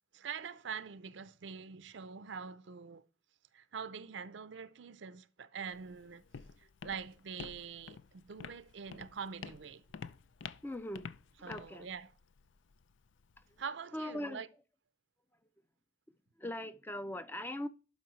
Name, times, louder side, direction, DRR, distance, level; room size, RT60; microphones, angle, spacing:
voice 1, 0.1-3.1 3.5-6.2 6.6-9.8 11.4-12.1 13.6-14.5, right 6 dB, 75° right, 0.5 m, -44 dB
Walk footsteps, 5.7-13.6, left 6 dB, 80° left, 0.5 m, -50 dB
voice 2, 10.6-11.1 11.4-11.9 13.9-14.4 16.4-17.7, left 1 dB, 10° left, 0.4 m, -40 dB
11.5 x 5.3 x 3.1 m
head